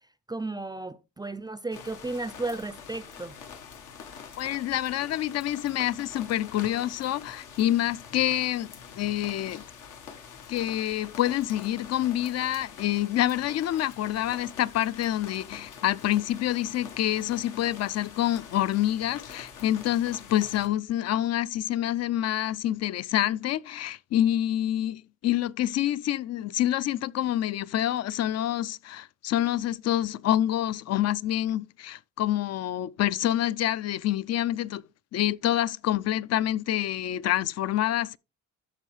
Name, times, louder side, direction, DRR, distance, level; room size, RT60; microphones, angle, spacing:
voice 1, 0.3-3.4, right 2 dB, 15° right, 0.4 m, -34 dB
sound 1, 1.7-20.7, left 6 dB, 85° left, 1.4 m, -45 dB
voice 2, 4.4-8.7 9.0-9.6 10.5-34.8 35.1-38.2, left 12 dB, 60° left, 0.4 m, -27 dB
13.0 x 4.6 x 3.2 m
cardioid pair, 90°, 30 cm